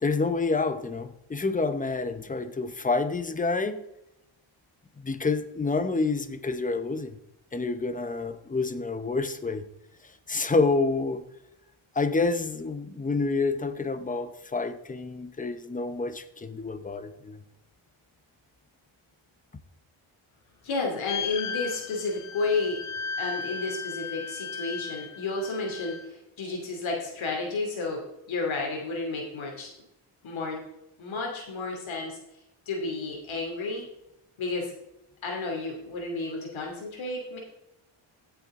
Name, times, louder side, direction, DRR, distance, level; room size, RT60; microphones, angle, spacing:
voice 1, 0.0-3.8 5.0-7.2 7.5-9.6 10.3-11.2 11.9-17.4, left 3 dB, 15° left, 10 dB, 0.8 m, -28 dB
voice 2, 20.6-22.8 23.2-29.7 30.2-30.6 31.0-32.2 32.7-33.9 34.4-34.7 35.2-37.4, left 3 dB, 65° left, 0 dB, 2.7 m, -31 dB
sound 1, 21.1-26.1, left 6 dB, 85° left, 1.0 m, -36 dB
15.5 x 6.9 x 3.7 m, 0.86 s
wide cardioid pair, 135°, 50 cm